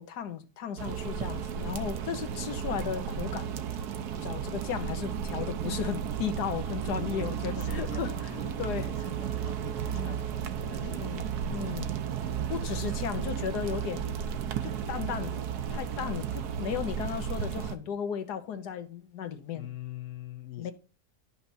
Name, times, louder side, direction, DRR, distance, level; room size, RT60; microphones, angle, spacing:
voice 1, 0.0-3.5 4.2-8.9 9.9-10.2 10.8-11.9 12.5-14.1 14.6-15.4 15.7-19.7 20.6-20.7, left 8 dB, 80° left, 1.5 m, -35 dB
sound 1, 0.8-17.7, right 8 dB, 80° right, 1.3 m, -34 dB
voice 2, 7.0-11.1 19.5-20.7, left 11 dB, 60° left, 0.9 m, -44 dB
11.0 x 5.8 x 4.1 m
omnidirectional pair, 1.7 m